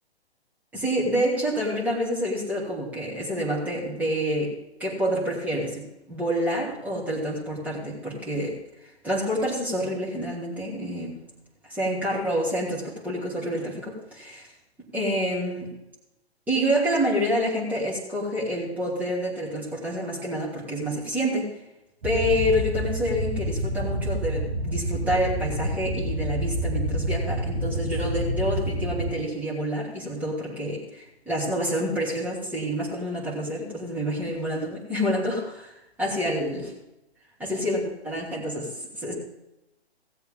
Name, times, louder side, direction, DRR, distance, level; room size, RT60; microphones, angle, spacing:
voice 1, 0.7-4.5 4.8-8.6 9.0-11.2 11.7-14.5 14.9-15.7 16.5-21.5 22.0-36.7 37.4-39.1, equal, 5° right, -6 dB, 2.9 m, -28 dB
sound 1, 22.0-29.1, equal, 65° right, 2.7 m, -28 dB
17.0 x 7.8 x 3.8 m, 0.91 s
figure-of-eight pair, 135°, 32 cm